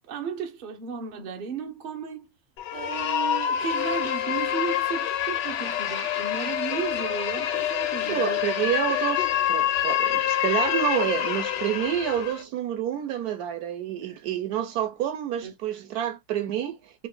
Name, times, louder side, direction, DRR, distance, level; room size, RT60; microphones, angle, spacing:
voice 1, 0.1-2.3 2.7-8.4 15.4-15.5, right 6 dB, 45° right, 0.6 m, -34 dB
sound 1, 2.6-12.4, left 11 dB, 90° left, 1.3 m, -27 dB
voice 2, 8.1-17.1, right 11 dB, 70° right, 1.0 m, -28 dB
3.0 x 2.4 x 3.6 m
omnidirectional pair, 1.8 m